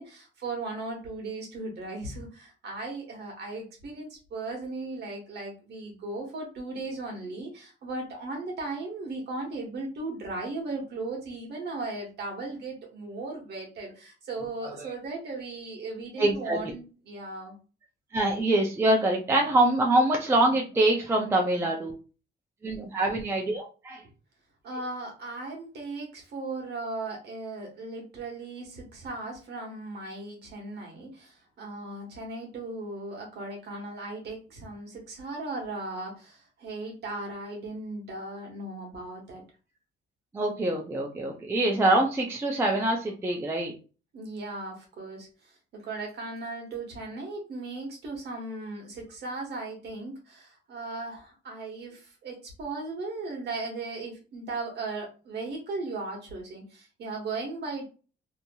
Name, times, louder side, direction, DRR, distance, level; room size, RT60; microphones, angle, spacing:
voice 1, 0.0-17.6 24.6-39.4 44.1-57.8, right 3 dB, 55° right, 1 dB, 1.2 m, -37 dB
voice 2, 16.2-16.6 18.1-21.9 22.6-24.0 40.3-43.7, right 1 dB, 10° right, 1 dB, 0.3 m, -25 dB
2.8 x 2.7 x 2.2 m, 0.34 s
cardioid pair, 175°, 20 cm